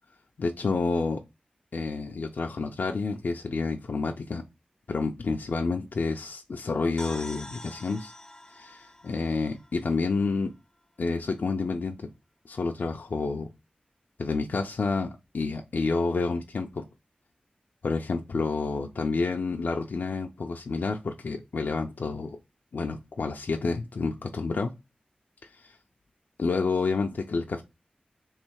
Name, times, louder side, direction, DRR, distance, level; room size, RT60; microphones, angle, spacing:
voice 1, 0.4-1.2 1.7-4.4 4.9-8.1 8.5-10.5 11.0-12.1 12.5-13.5 14.2-16.8 17.8-22.4 22.7-24.7 25.5-25.6 26.4-27.6, left 4 dB, 75° left, 0.4 m, -29 dB
sound 1, 7.0-10.6, left 1 dB, 20° left, 0.5 m, -46 dB
3.5 x 3.2 x 4.6 m
cardioid pair, 50°, 3 cm